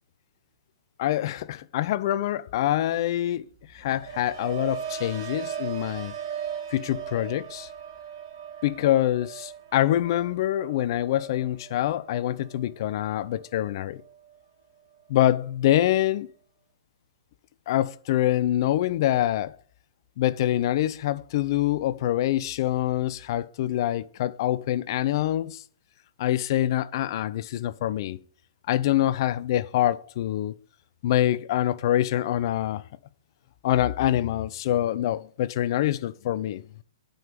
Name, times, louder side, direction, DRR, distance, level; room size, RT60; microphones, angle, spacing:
voice 1, 1.0-3.5 3.7-6.1 6.7-7.7 8.6-14.0 15.1-16.3 17.7-19.5 20.2-25.6 26.2-28.2 28.7-30.6 31.0-32.8 33.6-36.6, left 13 dB, 50° left, 0.7 m, -25 dB
sound 1, 3.5-13.6 13.9-14.4, right 8 dB, 50° right, 2.6 m, -39 dB
9.2 x 5.5 x 6.9 m
hypercardioid pair, 125°, 3 cm